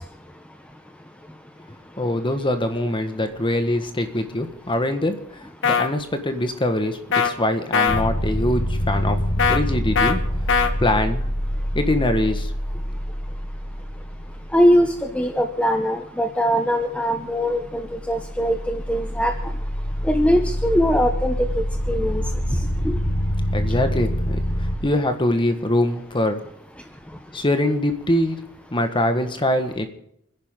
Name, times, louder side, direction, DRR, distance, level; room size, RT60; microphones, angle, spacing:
voice 1, 2.0-9.2 9.5-10.2 10.8-11.2 11.7-12.5 23.5-24.4 24.8-26.4 27.3-28.4 28.7-29.9, left 1 dB, 20° left, 7 dB, 1.6 m, -23 dB
sound 1, 5.6-5.9 7.1-7.3 7.7-8.0 9.4-9.6 10.0-10.1 10.5-10.7, left 6 dB, 60° left, 1.3 m, -19 dB
sound 2, 7.9-15.4 17.3-24.8, equal, 80° left, 5.6 m, -26 dB
voice 2, 14.5-19.3 20.1-21.3 21.9-22.2 22.8-23.0, equal, 5° left, 5 dB, 1.0 m, -21 dB
29.0 x 11.0 x 3.9 m, 0.75 s
head